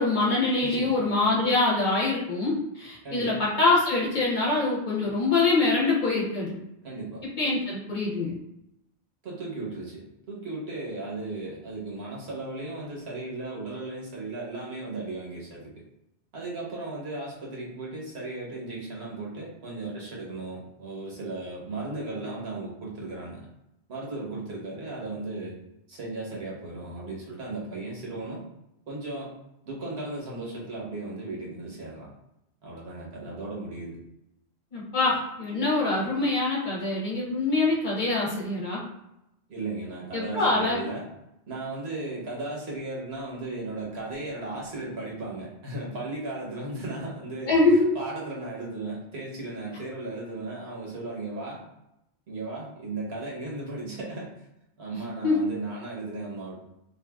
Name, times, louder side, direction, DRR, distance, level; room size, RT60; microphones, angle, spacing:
voice 1, 0.0-6.6 7.4-8.4 34.7-38.8 40.1-40.8 47.5-47.9 54.9-55.4, left 3 dB, 50° left, -5 dB, 0.8 m, -24 dB
voice 2, 0.6-0.9 3.0-3.4 6.8-7.2 9.2-15.7 16.3-23.4 23.9-25.5 25.9-28.4 28.9-29.3 29.6-32.1 32.6-34.0 39.5-41.1 41.5-51.6 52.3-54.3 54.8-56.5, right 2 dB, 70° right, -4 dB, 1.1 m, -36 dB
2.8 x 2.5 x 2.3 m, 0.85 s
omnidirectional pair, 1.1 m